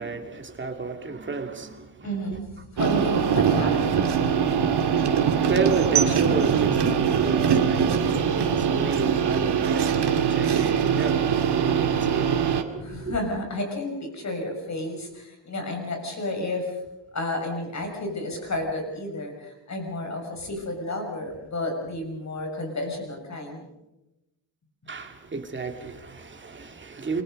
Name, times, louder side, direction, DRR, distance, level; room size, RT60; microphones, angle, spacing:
voice 1, 0.0-2.4 4.9-12.5 12.7-13.1 24.9-27.2, right 4 dB, 25° right, 2.4 m, -32 dB
voice 2, 2.0-4.1 12.8-16.8 17.1-23.6, left 1 dB, 40° left, 6.4 m, -31 dB
sound 1, 2.8-12.6, right 7 dB, 65° right, 2.3 m, -22 dB
28.5 x 23.5 x 5.3 m
wide cardioid pair, 175°, 44 cm